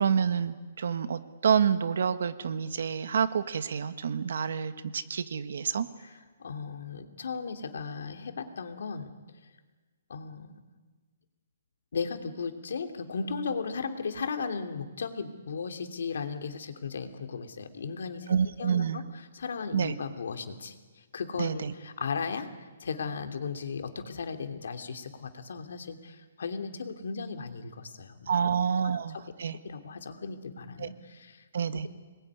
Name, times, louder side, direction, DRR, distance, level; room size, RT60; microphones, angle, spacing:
voice 1, 0.0-5.9 18.3-19.0 19.7-19.9 21.4-21.7 28.3-29.6 30.8-30.9 31.5-31.9, right 7 dB, 60° right, 11 dB, 1.6 m, -28 dB
voice 2, 6.4-9.1 10.1-10.5 11.9-22.5 22.8-28.6 29.1-29.2 29.6-31.4 31.7-31.9, left 5 dB, 65° left, 7 dB, 3.0 m, -36 dB
26.5 x 21.5 x 9.9 m, 1.3 s
hypercardioid pair, 175°, 0 cm